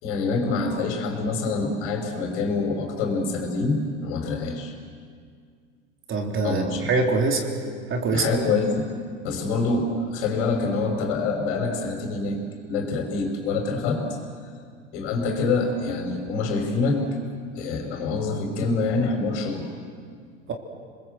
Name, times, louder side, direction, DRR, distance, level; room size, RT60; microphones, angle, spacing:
voice 1, 0.0-4.7 6.4-6.8 8.1-8.9 9.2-12.4 12.7-14.0 14.9-17.0 17.5-19.7, left 3 dB, 70° left, 0 dB, 5.4 m, -26 dB
voice 2, 6.1-7.5 7.9-8.4 20.5-20.6, right 3 dB, 35° right, 3 dB, 3.6 m, -24 dB
30.0 x 21.5 x 8.0 m, 2.1 s
hypercardioid pair, 100°, 35 cm